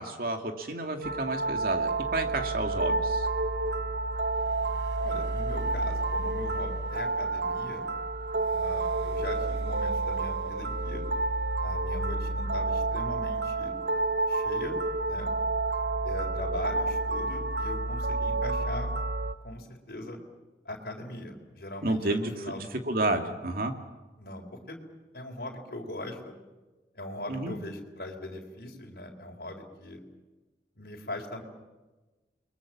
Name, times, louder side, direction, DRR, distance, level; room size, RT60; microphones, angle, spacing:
voice 1, 0.0-3.3 21.8-22.3 22.6-23.7 27.3-27.5, right 2 dB, 55° right, 5 dB, 2.4 m, -30 dB
sound 1, 1.0-19.3, right 3 dB, 80° right, 0.9 m, -30 dB
voice 2, 5.0-7.9 8.5-11.0 11.6-13.7 14.3-14.7 15.1-15.3 16.0-18.9 19.4-20.2 20.6-22.6 24.2-24.8 25.1-26.3 26.9-30.0 30.7-31.4, left 1 dB, 60° left, 1 dB, 4.1 m, -40 dB
29.5 x 22.0 x 7.5 m, 1.2 s
head